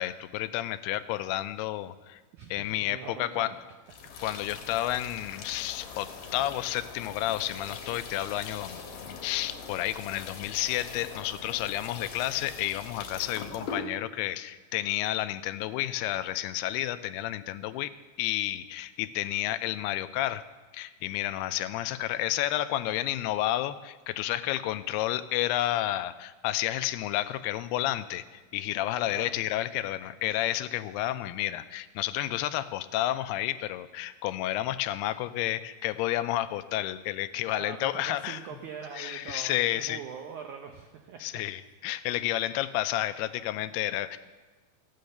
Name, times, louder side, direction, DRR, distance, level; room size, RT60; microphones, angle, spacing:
voice 1, 0.0-2.2 2.5-3.5 4.2-17.9 18.2-20.4 20.7-38.4 38.9-40.0 41.2-44.2, left 14 dB, 85° left, 12 dB, 2.5 m, -31 dB
voice 2, 2.3-3.6 29.1-29.3 37.5-41.4, right 7 dB, 90° right, 4 dB, 1.7 m, -42 dB
sound 1, 3.9-13.8, left 5 dB, 60° left, 3.0 m, -42 dB
14.5 x 9.5 x 6.6 m, 1.3 s
omnidirectional pair, 4.6 m